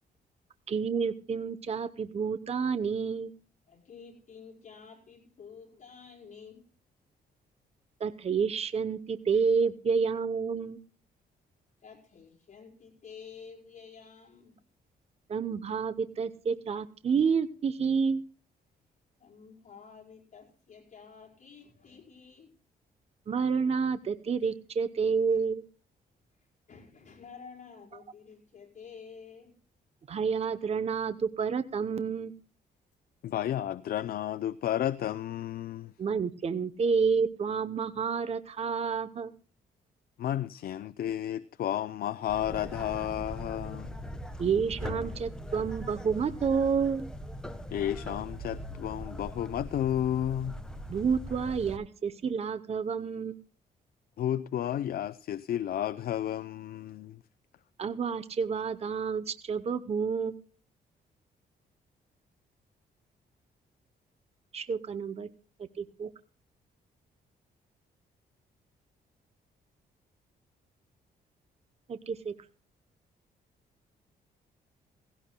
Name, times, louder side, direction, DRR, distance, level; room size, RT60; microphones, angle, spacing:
voice 1, 0.7-3.3 8.0-10.8 15.3-18.2 23.3-25.6 30.1-32.3 36.0-39.3 44.4-47.1 50.9-53.4 57.8-60.3 64.5-65.3 65.8-66.1 71.9-72.3, right 6 dB, 40° right, 0.8 m, -29 dB
voice 2, 3.7-6.7 9.3-9.5 11.8-14.6 19.2-22.6 24.4-24.5 25.3-25.4 26.7-29.6, left 6 dB, 45° left, 5.0 m, -50 dB
voice 3, 33.2-35.9 40.2-43.9 47.7-50.6 54.2-57.2, left 11 dB, 65° left, 0.5 m, -32 dB
sound 1, 42.3-51.8, equal, 5° left, 1.3 m, -41 dB
17.5 x 17.0 x 2.2 m
cardioid pair, 115°, 17 cm